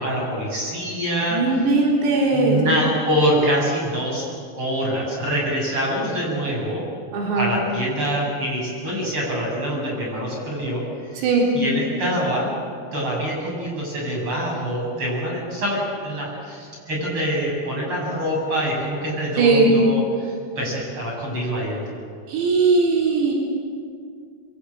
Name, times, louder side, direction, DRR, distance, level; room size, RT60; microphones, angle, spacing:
voice 1, 0.0-1.6 2.3-4.3 4.5-6.8 7.3-10.8 11.1-11.3 11.5-12.6 12.9-22.0, equal, 25° right, -2 dB, 8.0 m, -25 dB
voice 2, 1.3-2.6 7.1-7.5 11.2-11.5 19.4-19.7 22.3-23.4, right 3 dB, 90° right, -1 dB, 6.2 m, -19 dB
26.5 x 23.0 x 8.6 m, 2.2 s
omnidirectional pair, 5.9 m